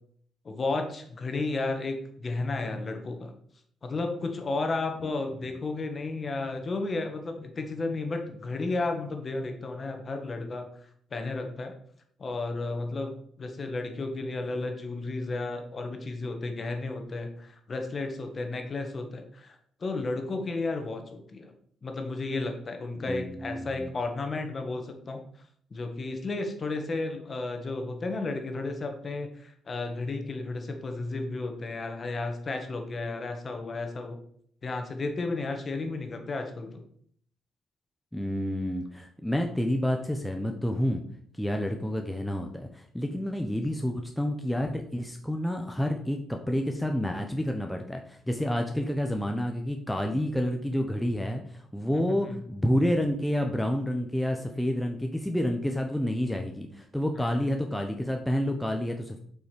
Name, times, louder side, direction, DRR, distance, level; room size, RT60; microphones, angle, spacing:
voice 1, 0.5-3.3 3.8-10.7 11.1-11.7 12.2-21.5 21.8-25.2 25.7-34.2 34.6-36.8 51.9-52.4 57.1-57.5, left 3 dB, 40° left, 5 dB, 1.8 m, -33 dB
voice 2, 23.1-23.9 38.1-41.0 41.3-59.2, equal, 5° left, 3 dB, 0.9 m, -29 dB
7.4 x 5.6 x 5.2 m, 0.62 s
cardioid pair, 90°, 0 cm